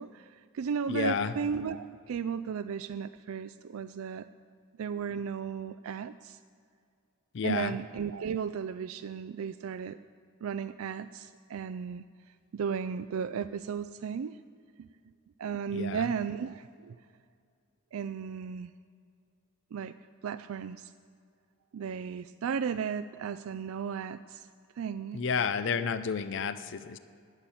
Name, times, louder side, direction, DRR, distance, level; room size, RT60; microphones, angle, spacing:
voice 1, 0.0-4.3 4.8-6.4 7.4-10.0 10.4-12.0 12.5-14.4 14.8-14.9 15.4-17.0 17.9-18.7 19.7-19.9 20.2-20.9 21.7-24.5 24.8-25.2 25.6-25.9, right 6 dB, 75° right, 11 dB, 0.3 m, -35 dB
voice 2, 0.9-1.3 7.3-7.7 15.7-16.0 25.1-27.0, left 6 dB, 55° left, 13 dB, 0.5 m, -31 dB
10.5 x 7.3 x 9.2 m, 2.3 s
head